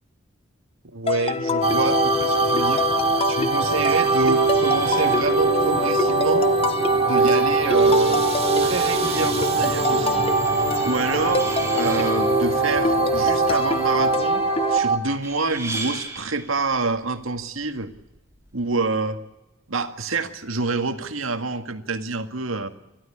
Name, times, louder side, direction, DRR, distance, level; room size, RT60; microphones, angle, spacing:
voice 1, 0.9-2.8 3.3-6.5 7.1-8.3 8.6-10.2 10.8-14.4 14.7-17.9 18.5-19.2 19.7-22.7, right 3 dB, 90° right, 8 dB, 1.9 m, -27 dB
sound 1, 1.1-14.8, left 3 dB, 30° left, 0.8 m, -26 dB
sound 2, 1.6-15.0, right 4 dB, 30° right, 2.1 m, -22 dB
sound 3, 4.0-18.9, right 3 dB, 15° right, 4.2 m, -40 dB
28.5 x 12.5 x 9.9 m, 0.95 s
head